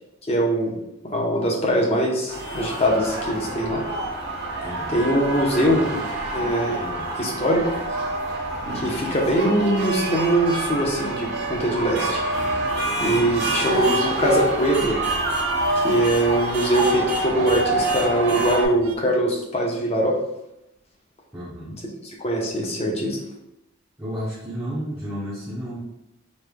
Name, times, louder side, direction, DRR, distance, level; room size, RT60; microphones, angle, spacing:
voice 1, 0.3-0.7 1.1-3.8 4.9-5.8 6.3-6.8 7.2-7.8 8.7-12.2 13.0-15.0 15.8-20.2 22.2-23.2, right 1 dB, 30° left, -2 dB, 0.8 m, -22 dB
sound 1, 2.3-18.7, right 2 dB, 55° right, 0.8 m, -27 dB
sound 2, 3.0-19.0, right 2 dB, 75° right, 0.4 m, -35 dB
voice 2, 4.6-5.0 5.7-6.0 6.8-7.1 13.4-13.6 21.3-21.8 24.0-25.8, equal, 10° right, -8 dB, 0.8 m, -32 dB
5.3 x 3.3 x 2.2 m, 0.86 s
head